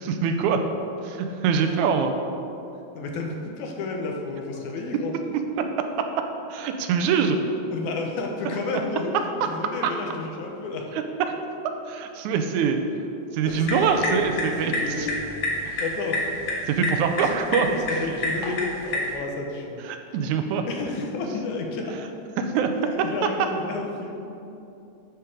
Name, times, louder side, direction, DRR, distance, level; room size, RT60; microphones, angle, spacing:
voice 1, 0.1-0.6 1.0-2.1 5.6-7.4 11.2-11.3 11.9-12.8 13.3-14.7 15.0-15.1 15.7-15.8 16.7-17.7 19.9-20.6 22.4-22.9, right 6 dB, 90° right, 6 dB, 2.0 m, -24 dB
voice 2, 3.0-5.2 7.7-9.1 9.5-10.9 13.5-14.3 14.6-15.2 15.5-16.4 17.2-17.4 17.7-19.8 20.7-22.0 22.8-24.1, left 3 dB, 85° left, 1 dB, 2.4 m, -31 dB
sound 1, 13.5-19.1, left 1 dB, 50° left, 1.8 m, -29 dB
11.5 x 4.6 x 4.8 m, 2.8 s
omnidirectional pair, 3.4 m